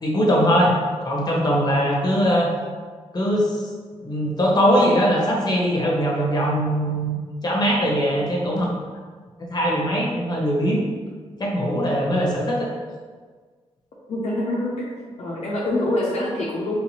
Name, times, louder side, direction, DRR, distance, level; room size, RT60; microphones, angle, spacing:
voice 1, 0.0-0.7 1.0-2.5 3.1-3.6 4.0-7.2 7.4-8.7 9.5-10.8 11.4-12.7, equal, 35° left, -3 dB, 1.0 m, -21 dB
voice 2, 14.1-14.7 15.2-16.8, left 1 dB, 60° left, -5 dB, 0.6 m, -25 dB
3.2 x 2.8 x 3.1 m, 1.5 s
cardioid pair, 60°, 12 cm